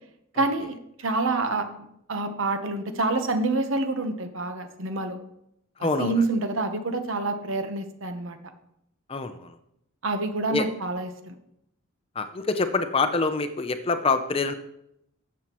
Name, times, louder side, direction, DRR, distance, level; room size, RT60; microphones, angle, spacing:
voice 1, 0.4-5.2 6.0-8.4 10.0-11.4, right 2 dB, 70° right, 7 dB, 1.0 m, -27 dB
voice 2, 5.8-6.1 9.1-9.6 10.5-10.7 12.2-14.5, left 3 dB, 25° left, 9 dB, 0.5 m, -25 dB
12.5 x 7.4 x 3.0 m, 0.77 s
head